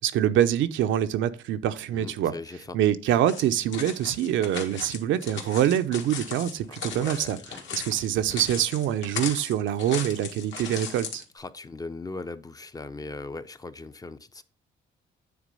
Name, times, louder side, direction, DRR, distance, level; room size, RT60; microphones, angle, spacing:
voice 1, 0.0-2.3 2.7-7.4 7.7-11.2, right 11 dB, 80° right, 0.6 m, -25 dB
voice 2, 1.9-2.8 6.7-7.6 11.3-14.4, left 3 dB, 20° left, 0.5 m, -39 dB
sound 1, 3.3-11.2, left 6 dB, 75° left, 1.9 m, -37 dB
9.5 x 3.7 x 5.3 m
cardioid pair, 120°, 19 cm